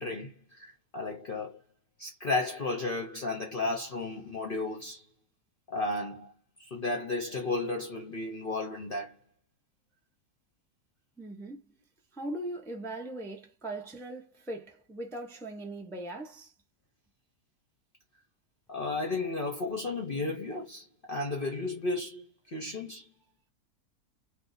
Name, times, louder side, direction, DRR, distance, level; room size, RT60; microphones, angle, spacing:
voice 1, 0.0-1.6 2.0-5.1 5.7-6.3 6.6-9.2 18.7-23.1, left 2 dB, 50° left, 0.7 m, -33 dB
voice 2, 11.2-11.7 12.1-16.5, right 1 dB, 5° left, 0.4 m, -40 dB
2.6 x 2.5 x 3.8 m
omnidirectional pair, 1.6 m